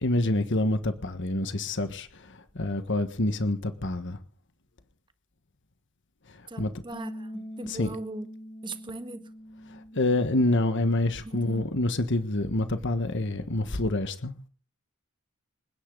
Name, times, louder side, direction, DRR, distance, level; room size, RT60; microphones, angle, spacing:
voice 1, 0.0-4.2 6.3-6.7 7.7-7.9 9.7-14.3, left 1 dB, 60° left, 1.5 m, -27 dB
voice 2, 6.5-8.3 8.6-9.3 11.2-11.7, right 2 dB, 20° right, 1.6 m, -39 dB
Bass guitar, 6.9-13.2, equal, 25° left, 2.6 m, -45 dB
27.0 x 10.0 x 4.0 m
head